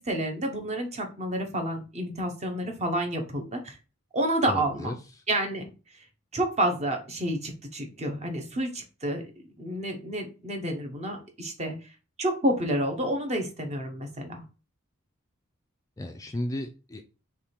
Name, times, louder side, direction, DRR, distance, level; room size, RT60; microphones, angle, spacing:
voice 1, 0.0-3.8 4.1-4.9 5.3-5.7 6.3-11.7 12.2-14.4, right 1 dB, 35° right, 4 dB, 1.0 m, -29 dB
voice 2, 4.5-5.0 16.0-17.1, left 1 dB, 15° left, 5 dB, 0.4 m, -34 dB
3.6 x 3.2 x 4.3 m, 0.33 s
head